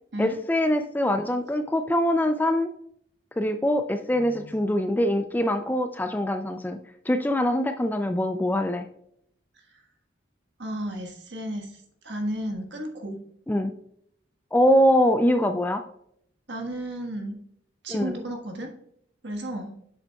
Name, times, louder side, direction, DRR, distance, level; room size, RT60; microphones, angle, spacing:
voice 1, 0.2-2.7 3.4-6.8 7.1-8.9 13.5-13.7 14.5-15.8 17.9-18.2, equal, 10° left, 8 dB, 0.3 m, -23 dB
voice 2, 4.1-4.6 10.6-13.2 16.5-17.4 17.8-18.7 19.2-19.7, right 1 dB, 65° right, 2 dB, 1.5 m, -33 dB
8.1 x 7.0 x 2.3 m, 0.70 s
head